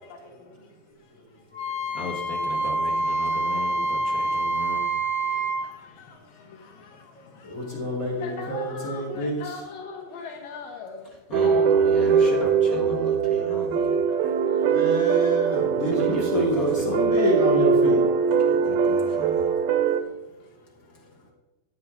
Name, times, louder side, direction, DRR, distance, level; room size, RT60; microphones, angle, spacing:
Wind instrument woodwind instrument, 1.5-5.6, right 2 dB, 35° right, 4.6 m, -26 dB
voice 1, 1.9-4.8 11.3-13.9 16.0-17.0 18.4-19.4, left 2 dB, 40° left, -3 dB, 1.4 m, -35 dB
voice 2, 6.6-6.9 7.6-7.7 8.2-11.1 11.4-11.7 12.2-12.3 13.4-13.7 14.1-14.7, left 5 dB, 75° left, 2 dB, 2.8 m, -39 dB
voice 3, 7.4-9.5 14.7-18.0, right 1 dB, 20° left, -4 dB, 3.8 m, -27 dB
sound 1, 11.3-20.0, right 6 dB, 90° right, 2.6 m, -22 dB
14.5 x 8.6 x 3.7 m, 1.0 s
omnidirectional pair, 4.0 m